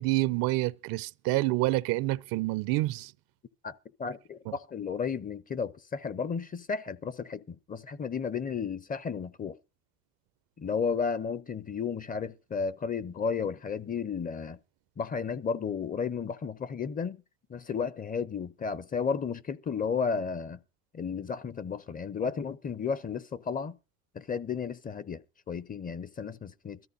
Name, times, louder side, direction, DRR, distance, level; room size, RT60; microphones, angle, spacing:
voice 1, 0.0-3.1, right 19 dB, 60° right, 0.6 m, -28 dB
voice 2, 4.0-9.6 10.6-14.6 15.0-17.2 17.5-20.6 20.9-23.8 24.1-25.2 25.5-26.8, left 6 dB, 20° left, 0.6 m, -33 dB
22.0 x 13.5 x 2.6 m
supercardioid pair, 100°, 40 cm